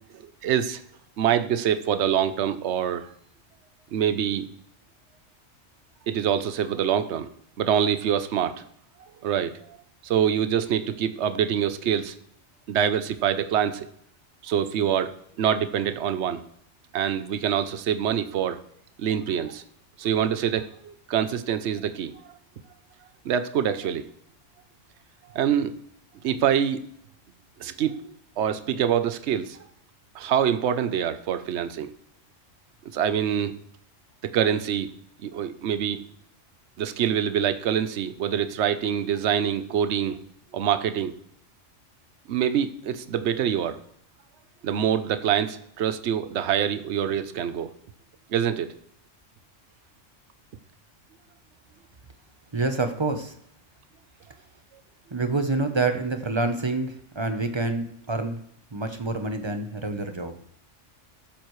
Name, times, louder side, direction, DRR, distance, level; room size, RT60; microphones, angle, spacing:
voice 1, 0.1-0.8 1.2-3.1 3.9-4.5 6.1-7.3 7.6-8.6 9.2-9.8 10.0-12.1 12.7-13.9 14.4-16.4 16.9-18.6 19.0-19.6 20.0-22.3 23.2-24.0 25.3-25.7 26.2-26.8 27.6-29.6 30.1-31.9 32.9-33.5 34.2-34.9 35.2-36.0 36.8-40.2 40.5-41.1 42.3-43.8 44.6-47.7 48.3-48.7, right 9 dB, 65° right, 11 dB, 1.0 m, -25 dB
voice 2, 52.5-53.4 55.1-58.4 58.7-60.4, right 3 dB, 25° right, 7 dB, 0.8 m, -27 dB
14.0 x 11.5 x 3.2 m, 0.70 s
omnidirectional pair, 1.3 m